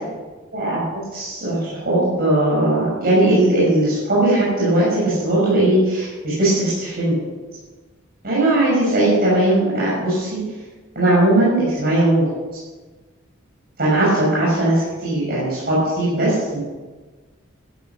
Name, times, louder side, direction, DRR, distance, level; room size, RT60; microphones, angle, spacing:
voice 1, 0.5-7.2 8.2-10.4 10.9-12.3 13.8-16.6, right 1 dB, 45° right, -8 dB, 6.2 m, -18 dB
15.5 x 12.5 x 6.0 m, 1.3 s
head